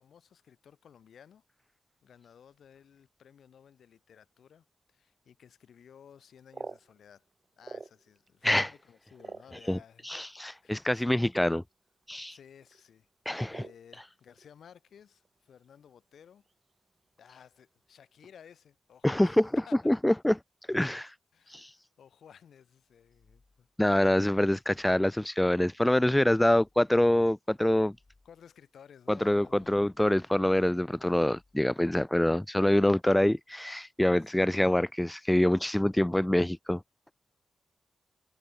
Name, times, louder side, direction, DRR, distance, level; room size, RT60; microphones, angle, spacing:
voice 1, 0.0-1.4 2.0-7.3 7.6-10.1 10.6-11.3 12.3-13.1 13.5-16.5 17.2-19.4 19.7-19.9 21.3-23.7 28.2-29.8 34.2-34.5, left 8 dB, 80° left, 3.9 m, -56 dB
sound 1, 6.2-8.3 8.7-10.1 10.9-11.0 11.3-11.6 11.9-12.3 12.6-12.8 13.5-14.5 14.7-15.6 15.9-16.0 16.4-16.7 17.2-17.6, right 4 dB, 35° right, 3.4 m, -46 dB
voice 2, 10.0-11.6 12.1-12.4 13.3-13.6 19.0-19.5 19.9-20.4 20.7-21.1 21.5-21.7 23.8-28.0 29.1-36.8, left 1 dB, 10° left, 0.3 m, -25 dB
sound 2, 22.8-23.9 24.4-25.5 26.0-27.1 27.6-28.7 29.2-30.2 30.8-31.9, left 2 dB, 25° left, 7.6 m, -69 dB
cardioid pair, 85°, 0 cm